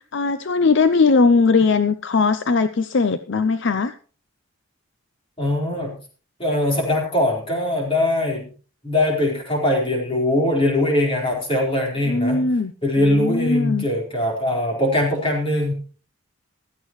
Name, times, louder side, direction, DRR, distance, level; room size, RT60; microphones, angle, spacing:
voice 1, 0.1-3.9 12.1-12.7 13.0-13.8, left 4 dB, 55° left, 11 dB, 0.6 m, -19 dB
voice 2, 5.4-6.0 6.4-8.5 8.8-12.4 12.8-15.7, left 1 dB, 25° left, -1 dB, 4.3 m, -21 dB
15.5 x 13.0 x 3.1 m, 0.39 s
head